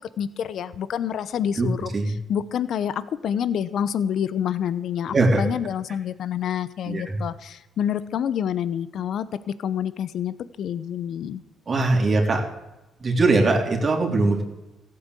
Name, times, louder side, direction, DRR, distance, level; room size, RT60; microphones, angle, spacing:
voice 1, 0.0-1.9 2.3-9.3 9.6-11.4, left 9 dB, 70° left, 15 dB, 0.9 m, -27 dB
voice 2, 6.9-7.2 11.7-12.4 13.0-14.4, right 3 dB, 40° right, 2 dB, 3.5 m, -21 dB
15.5 x 8.8 x 8.2 m, 0.99 s
cardioid pair, 90°, 0 cm